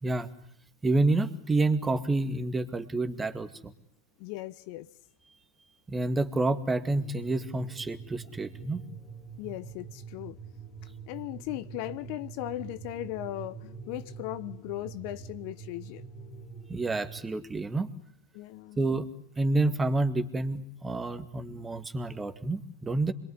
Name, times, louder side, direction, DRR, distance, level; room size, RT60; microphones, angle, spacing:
voice 1, 0.8-3.7 5.9-8.8 16.7-17.9 18.8-19.1 19.4-23.1, right 2 dB, 15° right, 2.3 m, -28 dB
voice 2, 4.2-4.9 9.4-10.4 11.1-16.0 18.3-18.8, left 16 dB, 55° left, 1.2 m, -37 dB
sound 1, 6.9-17.3, right 5 dB, 35° left, 3.5 m, -45 dB
26.5 x 22.5 x 9.8 m
hypercardioid pair, 100°, 0 cm